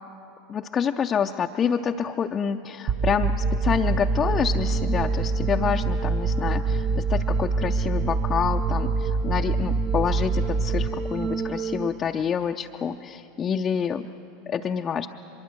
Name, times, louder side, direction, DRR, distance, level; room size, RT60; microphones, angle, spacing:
voice 1, 0.5-14.1 14.5-15.1, left 7 dB, 30° left, 3 dB, 0.6 m, -27 dB
sound 1, 2.9-11.9, right 4 dB, 45° right, 0.8 m, -25 dB
24.0 x 22.0 x 6.3 m, 2.9 s
figure-of-eight pair, 80°, 0 cm